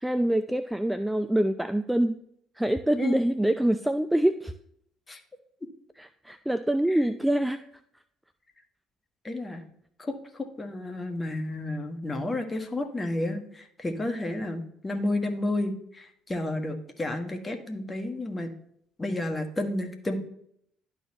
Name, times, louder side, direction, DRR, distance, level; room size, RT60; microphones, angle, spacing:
voice 1, 0.0-2.2 2.6-4.5 6.0-7.6 9.5-9.6, right 1 dB, 5° right, 11 dB, 0.4 m, -25 dB
voice 2, 9.2-9.6 10.0-18.5 19.0-20.1, left 2 dB, 25° left, 5 dB, 1.5 m, -31 dB
11.5 x 4.2 x 2.9 m, 0.68 s
hypercardioid pair, 55°, 0 cm